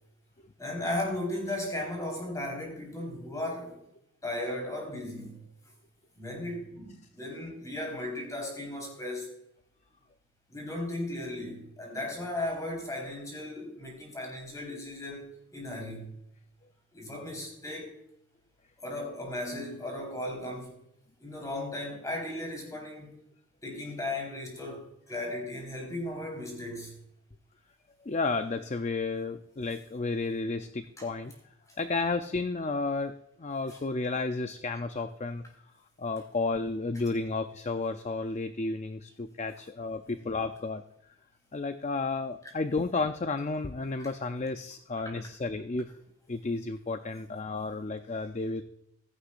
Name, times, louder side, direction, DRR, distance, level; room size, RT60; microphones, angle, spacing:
voice 1, 0.6-3.8 4.2-5.5 6.1-9.3 10.5-16.1 16.9-18.0 18.8-20.7 21.2-23.1 23.6-26.9 31.0-31.1 33.7-33.8 36.9-37.1 40.0-40.1 42.4-42.5 44.0-44.1 45.0-45.2 47.0-47.1, left 1 dB, 15° left, 4.2 m, -36 dB
voice 2, 28.0-31.3 31.8-33.1 33.4-35.4 36.0-40.8 41.5-45.9 46.3-48.6, left 3 dB, 35° left, 0.5 m, -32 dB
16.0 x 13.0 x 2.5 m
head